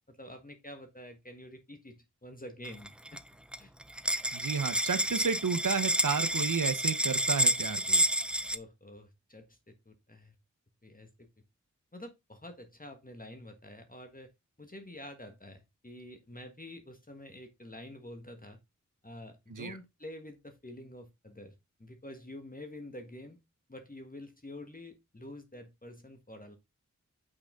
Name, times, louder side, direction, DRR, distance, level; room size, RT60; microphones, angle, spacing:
voice 1, 0.1-3.2 3.6-3.7 8.5-10.4 10.8-11.3 11.9-14.3 14.6-18.6 19.0-23.4 23.7-26.6, left 1 dB, 25° left, 1.5 m, -48 dB
sound 1, 2.7-3.2 3.5-3.6 3.8-8.6, equal, 5° right, 0.5 m, -29 dB
voice 2, 4.3-8.0 19.5-19.8, right 5 dB, 80° right, 1.0 m, -32 dB
6.6 x 6.1 x 3.7 m
wide cardioid pair, 55°, 31 cm